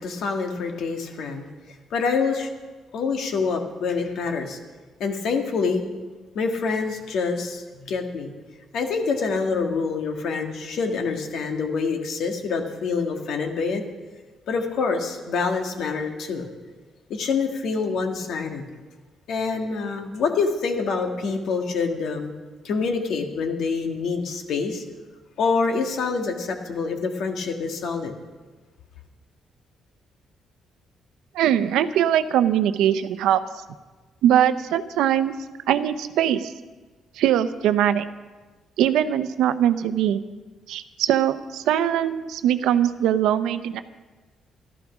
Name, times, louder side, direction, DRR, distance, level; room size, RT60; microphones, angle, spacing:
voice 1, 0.0-1.5 1.9-2.5 2.9-4.6 5.0-5.8 6.4-8.3 8.7-13.8 14.5-16.5 17.1-18.6 19.3-22.3 22.6-24.8 25.4-28.1, left 4 dB, 75° left, 4 dB, 1.8 m, -26 dB
voice 2, 31.3-33.4 34.2-35.3 35.7-36.5 37.2-38.1 38.8-40.2 40.7-43.8, right 10 dB, 90° right, 12 dB, 0.7 m, -21 dB
13.0 x 12.0 x 6.1 m, 1.3 s
cardioid pair, 90°, 0 cm